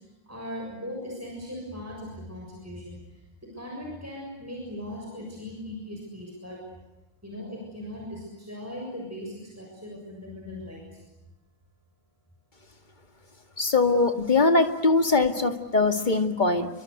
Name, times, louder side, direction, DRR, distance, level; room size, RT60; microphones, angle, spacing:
voice 1, 0.2-3.0 3.4-6.6 7.2-11.0, left 1 dB, 5° right, -1 dB, 6.9 m, -39 dB
voice 2, 13.6-16.7, left 3 dB, 20° left, 6 dB, 2.1 m, -22 dB
29.0 x 24.5 x 8.2 m, 1.0 s
omnidirectional pair, 2.3 m